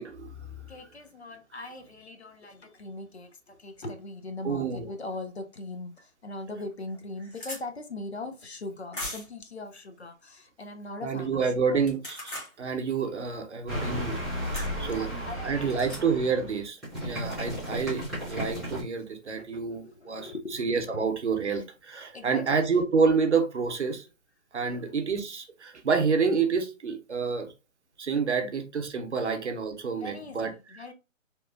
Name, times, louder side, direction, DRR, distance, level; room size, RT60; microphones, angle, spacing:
voice 1, 0.0-0.6 4.4-4.9 11.0-14.1 14.8-15.1 15.4-20.3 20.6-24.0 24.5-27.5 28.0-30.8, right 5 dB, 55° right, 0.6 m, -28 dB
voice 2, 0.7-11.4 11.7-11.9 14.0-14.3 14.9-16.1 17.6-17.8 19.4-21.1 22.1-22.6 24.6-25.0 28.4-28.5 29.2-29.4 30.0-30.9, left 2 dB, 55° left, 0.5 m, -41 dB
sound 1, 6.0-6.1 6.6-6.7 6.9-7.6 8.9-9.4 11.8-12.5 14.5-14.7 15.7-16.0, left 1 dB, 40° left, 0.9 m, -38 dB
sound 2, 13.7-18.8, equal, ahead, 0.5 m, -34 dB
2.9 x 2.1 x 2.2 m
hypercardioid pair, 170°, 40 cm